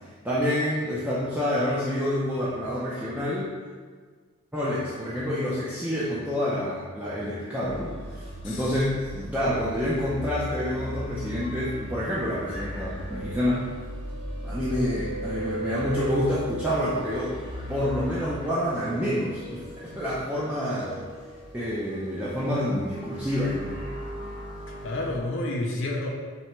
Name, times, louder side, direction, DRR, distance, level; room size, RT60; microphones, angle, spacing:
voice 1, 0.2-3.5 4.5-13.7 14.4-17.4 17.7-19.6 19.9-21.0 21.5-23.8, equal, 10° right, -9 dB, 0.4 m, -28 dB
sound 1, 7.6-25.2, equal, 25° right, 0.8 m, -37 dB
voice 2, 24.7-26.1, left 2 dB, 60° left, 0 dB, 0.5 m, -30 dB
4.4 x 3.3 x 3.0 m, 1.5 s
head